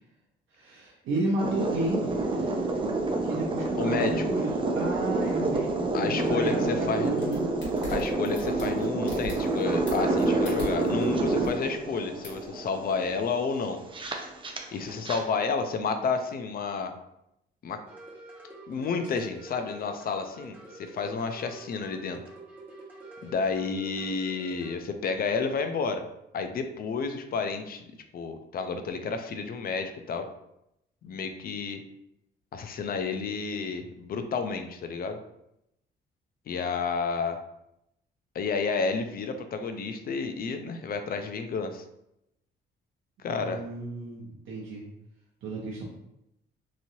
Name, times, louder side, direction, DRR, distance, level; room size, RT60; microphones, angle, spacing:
voice 1, 0.5-2.8 3.2-5.7 5.9-7.4 43.3-44.8 45.4-45.8, right 2 dB, 80° right, -4 dB, 0.7 m, -33 dB
sound 1, 1.4-15.2, right 2 dB, 25° right, 0.5 m, -28 dB
voice 2, 3.8-4.2 5.9-7.1 7.9-13.8 14.7-16.9 17.6-17.8 18.7-22.2 23.2-26.0 26.3-27.9 28.1-30.2 31.0-31.8 32.5-35.2 36.5-37.4 38.3-41.8 43.2-43.6, left 5 dB, 50° left, 7 dB, 0.4 m, -31 dB
sound 2, 7.0-11.1 11.4-11.5 12.2-12.4, left 1 dB, 65° left, 1.3 m, -40 dB
sound 3, 17.9-24.8, right 2 dB, 10° right, 1.0 m, -48 dB
3.0 x 2.7 x 2.7 m, 0.83 s
cardioid pair, 90°, 20 cm